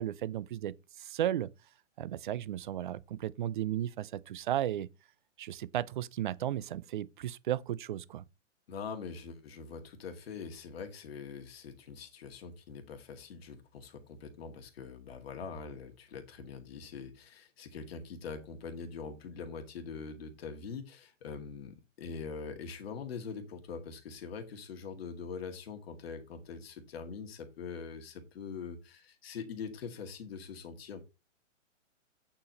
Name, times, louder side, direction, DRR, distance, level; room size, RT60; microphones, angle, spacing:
voice 1, 0.0-1.5 2.0-4.9 5.4-8.3, right 12 dB, 40° right, 0.5 m, -34 dB
voice 2, 8.7-31.0, left 5 dB, 50° left, 2.0 m, -43 dB
8.7 x 4.6 x 5.2 m
hypercardioid pair, 145°, 38 cm